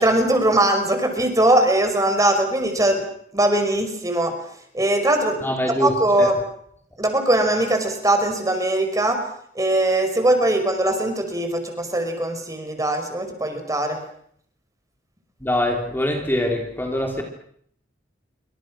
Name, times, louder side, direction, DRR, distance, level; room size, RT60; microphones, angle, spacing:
voice 1, 0.0-3.0 3.3-4.3 4.7-5.4 5.8-6.4 7.0-9.2 9.6-14.0, right 1 dB, 20° right, 6 dB, 5.3 m, -20 dB
voice 2, 5.4-6.3 15.4-17.2, left 1 dB, 10° left, 1 dB, 3.5 m, -24 dB
28.0 x 25.5 x 6.3 m, 0.66 s
head